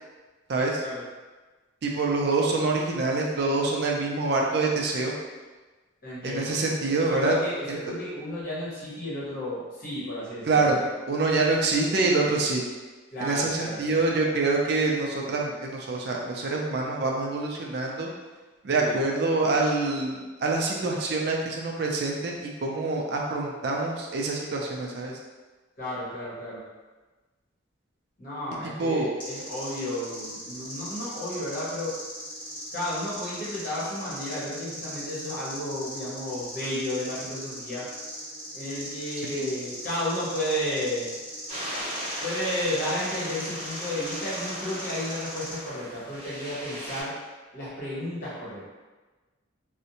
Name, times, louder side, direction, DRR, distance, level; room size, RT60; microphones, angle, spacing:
voice 1, 0.5-0.8 1.8-5.1 6.2-7.3 7.7-7.8 10.5-10.8 11.1-12.6 13.2-18.1 18.6-25.2 28.8-29.1 39.3-39.5, right 3 dB, 55° right, -1 dB, 0.4 m, -26 dB
voice 2, 6.0-6.6 7.1-10.8 13.1-14.0 18.8-19.0 25.8-26.6 28.2-31.9 32.7-37.9 38.5-41.1 42.2-47.2 47.5-48.7, left 1 dB, 45° left, -9 dB, 1.0 m, -32 dB
sound 1, 29.2-45.6, equal, 25° left, 1.1 m, -39 dB
sound 2, 41.5-47.0, equal, 30° right, 0.8 m, -37 dB
2.5 x 2.1 x 2.8 m, 1.3 s
head